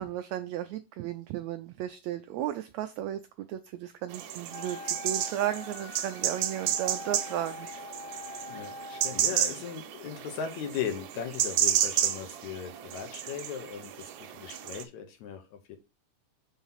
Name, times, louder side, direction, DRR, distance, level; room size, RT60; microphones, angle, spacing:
voice 1, 0.0-3.2 3.5-7.7 9.3-9.5, right 12 dB, 90° right, 1.6 m, -34 dB
sound 1, 4.1-14.8, right 10 dB, 70° right, 2.0 m, -32 dB
Wind instrument woodwind instrument, 4.5-9.3, left 3 dB, 50° left, 1.9 m, -44 dB
voice 2, 8.5-15.8, left 8 dB, 70° left, 2.2 m, -38 dB
5.6 x 4.1 x 5.5 m
omnidirectional pair, 3.7 m